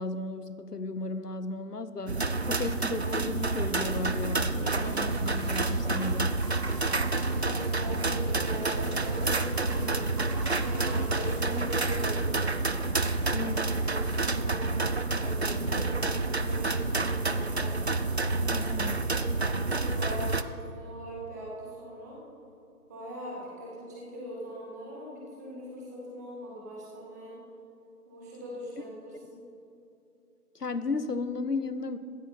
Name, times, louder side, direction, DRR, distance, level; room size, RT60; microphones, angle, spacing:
voice 1, 0.0-6.4 13.3-13.6 18.5-19.0 29.2-29.3 30.5-32.0, left 3 dB, 85° left, 12 dB, 1.0 m, -34 dB
sound 1, 2.1-20.4, right 3 dB, 45° right, 0.5 m, -29 dB
sound 2, 4.8-12.2, right 1 dB, 80° right, 3.0 m, -45 dB
voice 2, 7.3-12.4 13.0-14.9 15.1-17.7 18.3-19.2 19.5-22.2 22.9-27.4 28.1-29.4, equal, 10° right, -5 dB, 1.7 m, -41 dB
15.0 x 12.5 x 4.3 m, 2.7 s
figure-of-eight pair, 155°, 46 cm